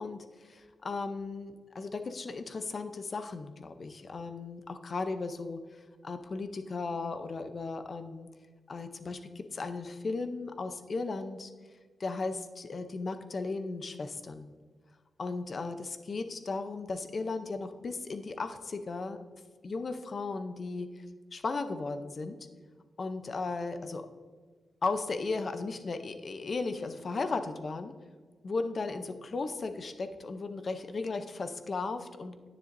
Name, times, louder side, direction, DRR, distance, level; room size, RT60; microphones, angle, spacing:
voice 1, 0.0-5.6 6.0-8.3 8.7-11.5 12.0-14.5 15.2-19.2 19.6-21.0 21.3-22.4 23.0-24.1 24.8-27.9 28.4-32.3, left 3 dB, 40° left, 9 dB, 0.5 m, -36 dB
10.0 x 9.7 x 2.6 m, 1.5 s
wide cardioid pair, 175°, 0 cm